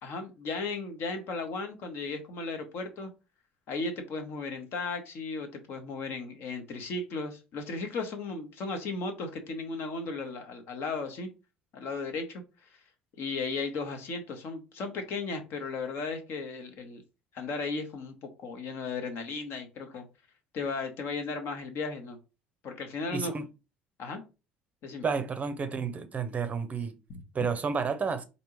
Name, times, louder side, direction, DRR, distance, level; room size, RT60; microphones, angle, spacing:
voice 1, 0.0-3.1 3.7-11.3 11.7-12.4 12.7-12.8 13.2-17.0 17.3-18.1 18.4-20.0 20.5-22.2 22.6-23.3 24.0-24.2 24.8-25.0 27.1-27.2, left 3 dB, 50° left, 0.9 m, -35 dB
voice 2, 23.1-23.5 25.0-26.9 27.3-28.2, right 5 dB, 30° right, 0.6 m, -31 dB
4.4 x 2.7 x 3.0 m
figure-of-eight pair, 60°, 5 cm